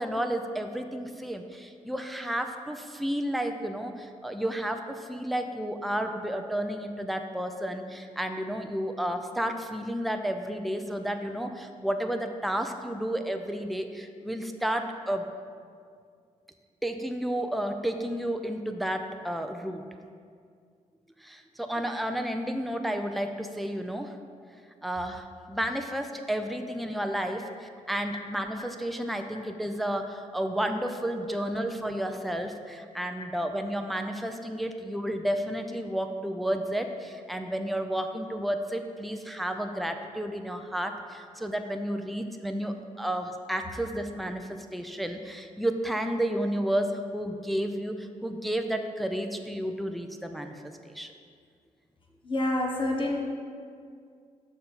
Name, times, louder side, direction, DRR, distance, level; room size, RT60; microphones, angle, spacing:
voice 1, 0.0-15.2 16.8-19.8 21.2-24.1 24.8-51.1, right 1 dB, ahead, 5 dB, 0.5 m, -31 dB
voice 2, 52.2-53.2, left 1 dB, 40° left, 0 dB, 1.1 m, -27 dB
6.7 x 4.2 x 5.5 m, 2.2 s
cardioid pair, 70°, 14 cm